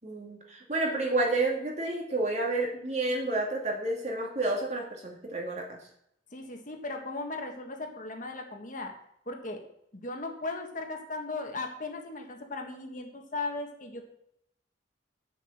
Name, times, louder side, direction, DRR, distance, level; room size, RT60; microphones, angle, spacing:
voice 1, 0.0-5.8, right 2 dB, 40° right, 1 dB, 2.3 m, -30 dB
voice 2, 6.3-8.9 9.3-9.6 9.9-14.1, left 3 dB, 45° left, 3 dB, 1.6 m, -37 dB
9.6 x 7.2 x 6.5 m, 0.75 s
head